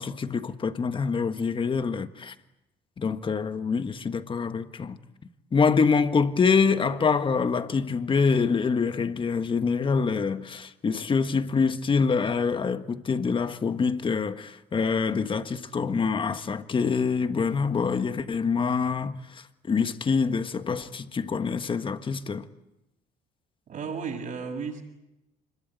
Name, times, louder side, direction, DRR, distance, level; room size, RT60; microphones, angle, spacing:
voice 1, 0.0-2.3 3.0-5.0 5.5-22.5, left 5 dB, 30° left, 1.5 m, -25 dB
voice 2, 23.7-24.8, right 5 dB, 50° right, 7.7 m, -34 dB
26.0 x 22.0 x 9.3 m
cardioid pair, 110°, 17 cm